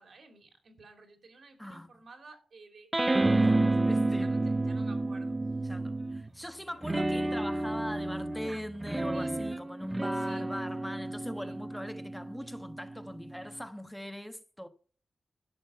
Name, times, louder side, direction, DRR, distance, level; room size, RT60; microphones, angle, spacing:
voice 1, 0.0-3.8 4.1-5.3 6.6-6.9 9.1-9.4 10.1-10.5 11.3-11.6 12.4-12.5, right 3 dB, 70° right, 3.0 m, -54 dB
sound 1, 2.9-6.3 6.8-13.6, right 2 dB, 25° right, 0.8 m, -30 dB
voice 2, 3.9-4.4 5.6-14.7, equal, 5° left, 1.2 m, -40 dB
11.5 x 6.6 x 5.6 m
cardioid pair, 70°, 0 cm